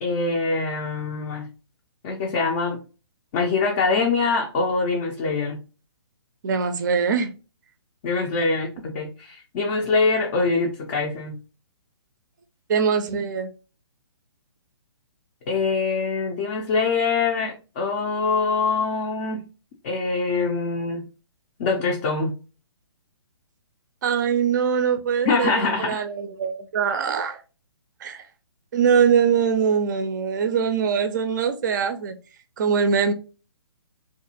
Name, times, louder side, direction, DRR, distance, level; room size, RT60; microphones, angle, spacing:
voice 1, 0.0-1.5 2.0-2.8 3.3-5.6 8.0-11.3 15.5-19.4 19.8-21.0 21.6-22.4 25.3-26.0, left 4 dB, 30° left, 0.4 m, -24 dB
voice 2, 6.4-7.3 12.7-13.5 24.0-27.4 28.0-28.2 28.7-32.2 32.6-33.1, right 6 dB, 45° right, 0.4 m, -22 dB
2.5 x 2.3 x 2.7 m
figure-of-eight pair, 135°, 14 cm